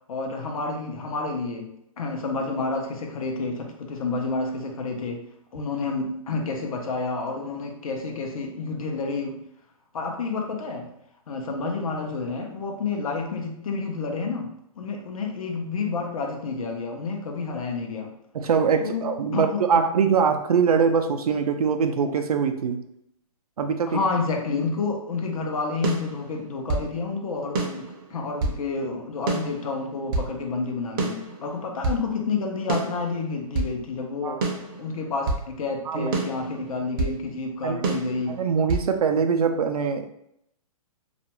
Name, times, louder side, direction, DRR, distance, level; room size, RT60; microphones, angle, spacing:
voice 1, 0.1-5.3 5.5-9.4 9.9-10.9 11.3-14.5 14.8-18.1 18.8-19.8 23.9-34.4 34.8-38.4, left 4 dB, 70° left, 2 dB, 0.7 m, -29 dB
voice 2, 18.3-22.8 23.6-24.0 34.2-34.4 35.9-36.2 37.6-38.0 38.3-40.1, right 6 dB, 90° right, 7 dB, 0.4 m, -23 dB
sound 1, 25.8-26.9 27.5-28.6 29.3-30.3 31.0-32.0 32.7-33.8 34.4-35.5 36.1-37.2 37.8-38.9, right 3 dB, 35° right, 0.5 m, -28 dB
2.4 x 2.2 x 2.9 m, 0.77 s
hypercardioid pair, 150°, 19 cm